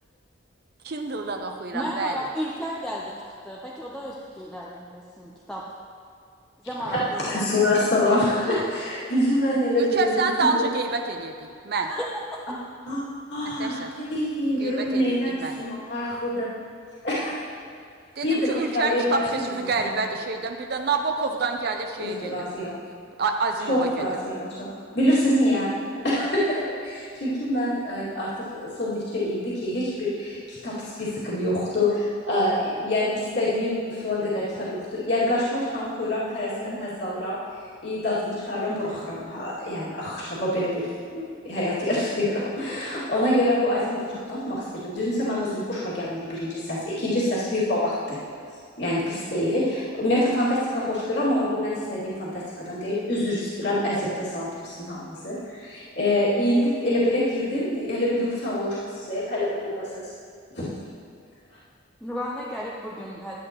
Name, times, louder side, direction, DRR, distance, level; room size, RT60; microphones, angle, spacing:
voice 1, 0.8-2.3 9.8-11.9 13.6-13.9 14.6-15.6 18.2-22.7 23.2-24.1, right 4 dB, 55° right, 4 dB, 0.5 m, -28 dB
voice 2, 1.7-5.6 6.6-7.5 7.9-8.1 11.9-12.2 62.0-63.4, equal, 5° left, -5 dB, 0.6 m, -33 dB
voice 3, 6.9-10.7 12.9-13.0 13.3-16.5 17.0-17.4 18.2-19.5 19.8-19.9 22.0-22.7 23.7-25.7 26.0-26.6 26.8-30.7 31.0-37.4 37.8-48.2 48.8-60.1 60.5-60.8, left 1 dB, 60° left, -9 dB, 2.3 m, -26 dB
12.0 x 8.7 x 3.0 m, 2.4 s
head